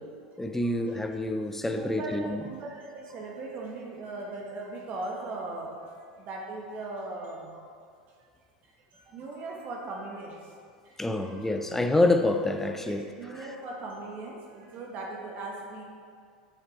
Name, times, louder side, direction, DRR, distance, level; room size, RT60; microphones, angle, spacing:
voice 1, 0.4-2.4 11.0-13.5, left 2 dB, 10° left, 0.6 m, -27 dB
voice 2, 1.8-7.7 8.6-10.5 10.8-11.4 12.8-15.8, right 2 dB, 45° right, 1.3 m, -39 dB
8.2 x 6.3 x 4.1 m
hypercardioid pair, 95°, 4 cm